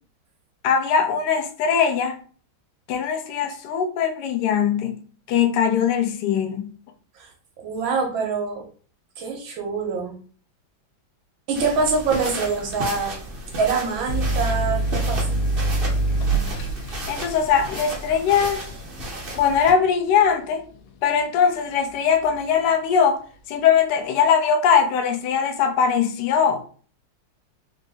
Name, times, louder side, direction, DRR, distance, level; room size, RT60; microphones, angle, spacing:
voice 1, 0.6-2.2 2.9-5.0 5.3-6.7 17.1-18.6 19.4-20.6 21.0-23.2 23.5-26.7, left 7 dB, 70° left, 1.2 m, -21 dB
voice 2, 7.6-8.7 9.2-10.1 11.5-13.2 13.6-15.4, right 4 dB, 75° right, 1.6 m, -25 dB
sound 1, 11.5-19.7, right 1 dB, 45° right, 0.7 m, -34 dB
sound 2, 14.1-21.4 21.8-22.5, right 2 dB, 85° left, 1.4 m, -26 dB
3.9 x 2.6 x 3.3 m
omnidirectional pair, 2.2 m